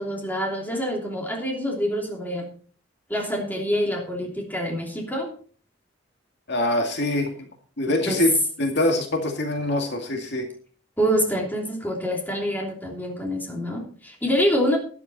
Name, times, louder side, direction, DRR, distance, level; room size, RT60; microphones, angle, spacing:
voice 1, 0.0-2.5 3.1-5.3 8.0-8.2 11.0-14.8, equal, 10° left, 0 dB, 3.1 m, -26 dB
voice 2, 6.5-7.3 7.8-10.5, left 1 dB, 60° left, 3 dB, 2.1 m, -24 dB
12.5 x 11.0 x 4.2 m, 0.42 s
head